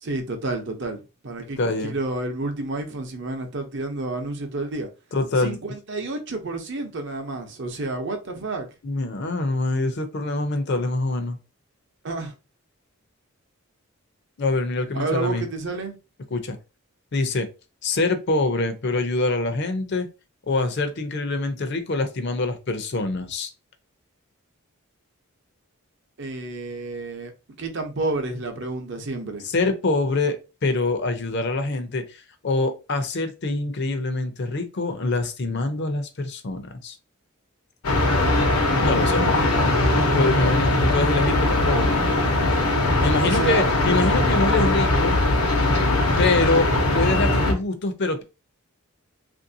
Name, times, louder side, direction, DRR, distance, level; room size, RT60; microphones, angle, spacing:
voice 1, 0.0-4.9 5.4-8.7 12.0-12.3 14.9-16.0 26.2-27.3 27.6-29.5 43.2-43.6, right 2 dB, 55° right, 0.7 m, -30 dB
voice 2, 1.6-1.9 5.1-5.6 8.8-11.4 14.4-15.4 16.3-16.6 17.1-17.5 17.8-20.1 20.5-23.5 29.5-37.0 38.8-39.3 40.0-41.9 43.0-45.2 46.2-46.7 46.9-48.2, left 2 dB, 50° left, 0.5 m, -25 dB
sound 1, 37.8-47.5, left 2 dB, 85° left, 0.9 m, -20 dB
3.2 x 2.6 x 2.6 m
head